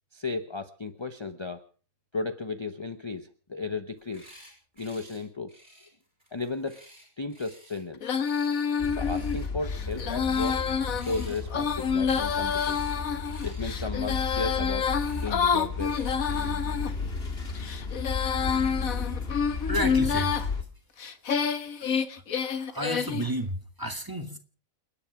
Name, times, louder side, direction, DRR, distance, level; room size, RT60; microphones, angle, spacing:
voice 1, 0.1-1.6 2.1-4.3 4.8-5.5 6.3-6.8 7.2-8.1 8.9-10.6 11.0-12.9 13.4-16.0, left 3 dB, 25° left, 0.9 m, -34 dB
sound 1, 3.9-4.5 4.8-5.2 5.5-7.8 8.1-8.7 9.0-9.5 9.7-10.6 11.0-13.0 13.2-13.7 14.0-14.4 14.9-15.3 15.8-16.1, equal, 35° right, 7.9 m, -53 dB
Female singing, 8.0-16.9 17.5-20.5 21.0-23.3, left 6 dB, 85° left, 1.7 m, -28 dB
sound 2, 8.8-20.6, left 4 dB, 45° left, 2.7 m, -34 dB
voice 2, 19.6-20.4 22.4-24.4, equal, 15° right, 2.0 m, -32 dB
29.0 x 10.0 x 4.8 m
omnidirectional pair, 1.4 m